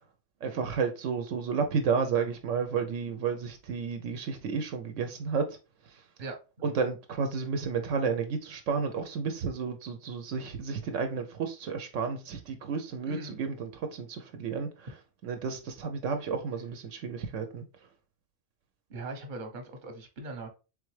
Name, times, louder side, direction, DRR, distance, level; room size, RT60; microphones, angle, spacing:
voice 1, 0.4-5.6 5.9-6.0 6.6-14.9 15.2-17.6, right 5 dB, 75° right, 0.9 m, -32 dB
voice 2, 6.2-6.7 13.1-13.4 18.9-20.5, right 2 dB, 45° right, 0.9 m, -40 dB
3.7 x 3.4 x 3.1 m
omnidirectional pair, 1.3 m